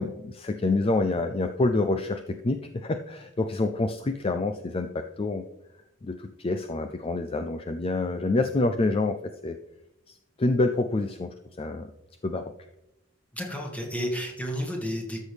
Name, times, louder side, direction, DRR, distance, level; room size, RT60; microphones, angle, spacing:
voice 1, 0.0-5.5 6.0-9.6 10.1-11.9 12.2-12.5, left 2 dB, 30° left, 7 dB, 0.4 m, -27 dB
voice 2, 13.3-15.2, equal, 5° left, -1 dB, 2.0 m, -31 dB
13.0 x 6.4 x 3.4 m, 0.89 s
head